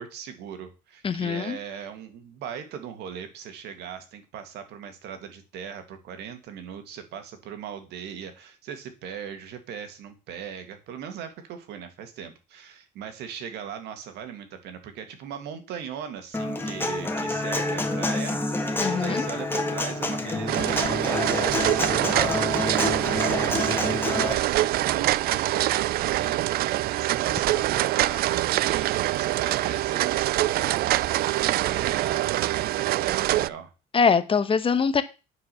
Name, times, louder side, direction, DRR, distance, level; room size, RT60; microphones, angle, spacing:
voice 1, 0.0-33.7, right 8 dB, 80° right, 2.1 m, -39 dB
voice 2, 1.0-1.6 18.8-19.3 33.9-35.0, left 5 dB, 30° left, 1.1 m, -23 dB
Human voice / Acoustic guitar, 16.3-24.3, left 2 dB, 15° left, 1.8 m, -28 dB
sound 1, 20.5-33.5, right 15 dB, 65° right, 0.4 m, -25 dB
9.5 x 5.0 x 6.8 m
cardioid pair, 110°, 17 cm